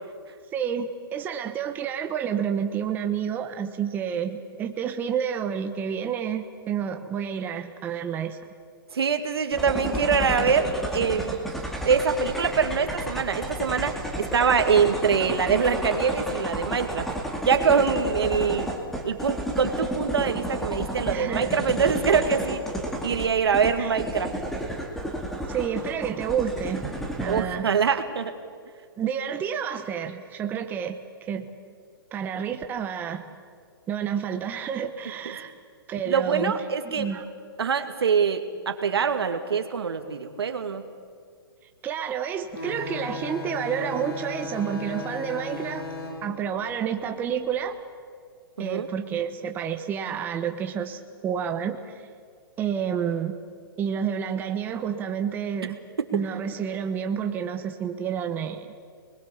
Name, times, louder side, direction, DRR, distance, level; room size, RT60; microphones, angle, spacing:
voice 1, 0.5-8.4 21.1-21.5 23.8-24.0 25.5-26.9 27.2-27.7 29.0-31.0 31.3-31.5 32.1-33.2 33.9-35.5 35.9-36.5 36.9-37.3 41.8-45.8 46.2-47.8 48.6-52.0 52.6-53.4 53.8-55.8 56.1-58.7, right 8 dB, 15° right, 6 dB, 1.0 m, -29 dB
voice 2, 8.9-11.4 11.8-17.1 17.5-18.7 19.0-22.6 23.0-24.3 27.3-28.3 36.1-37.1 37.6-40.8 48.6-48.9, right 6 dB, 90° right, 7 dB, 2.3 m, -24 dB
sound 1, 9.5-27.4, right 1 dB, ahead, 2.1 m, -32 dB
sound 2, 42.5-47.7, left 3 dB, 80° left, 6.3 m, -36 dB
28.0 x 21.0 x 7.2 m, 2.1 s
hypercardioid pair, 155°, 13 cm